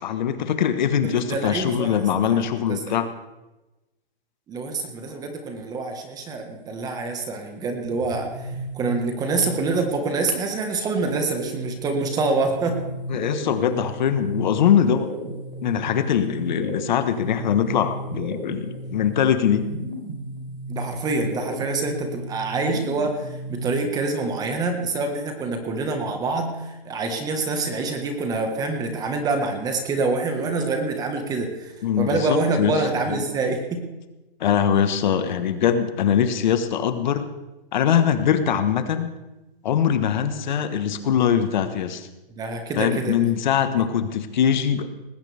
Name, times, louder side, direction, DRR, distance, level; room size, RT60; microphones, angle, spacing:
voice 1, 0.0-3.1 13.1-15.1 15.6-19.6 31.8-33.2 34.4-37.3 37.7-39.1 39.6-42.1 42.8-44.9, left 8 dB, 50° left, 9 dB, 1.4 m, -22 dB
voice 2, 1.0-2.0 2.3-2.8 4.5-8.5 8.7-12.8 20.7-33.8 42.4-43.1, right 3 dB, 15° right, 5 dB, 1.5 m, -26 dB
sound 1, 7.9-10.0 11.0-23.9, right 1 dB, 65° right, 6.8 m, -34 dB
19.5 x 16.0 x 3.5 m, 1.0 s
hypercardioid pair, 155°, 29 cm